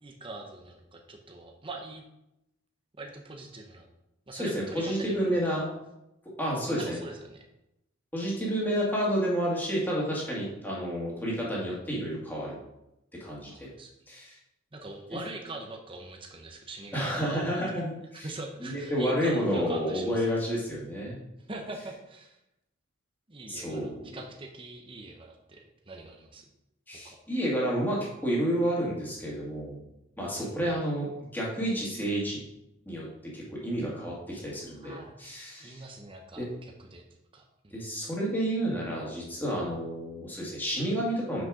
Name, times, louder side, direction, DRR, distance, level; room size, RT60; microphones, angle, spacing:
voice 1, 0.0-2.0 3.0-3.9 4.3-5.5 6.7-7.4 13.5-13.9 14.7-17.6 18.1-20.3 21.5-22.4 23.3-26.5 27.0-27.2 30.4-30.5 34.4-35.3 35.6-37.0 37.3-37.8, right 2 dB, 25° right, 2 dB, 0.7 m, -43 dB
voice 2, 4.3-5.6 6.4-7.0 8.1-12.6 13.2-13.7 14.1-14.4 16.9-18.3 18.6-21.2 23.5-24.0 26.9-29.8 30.2-31.1 31.3-32.4 32.9-33.1 33.3-35.8 36.4-36.5 37.7-41.5, equal, 10° left, -5 dB, 2.1 m, -30 dB
6.2 x 5.3 x 4.9 m, 0.88 s
head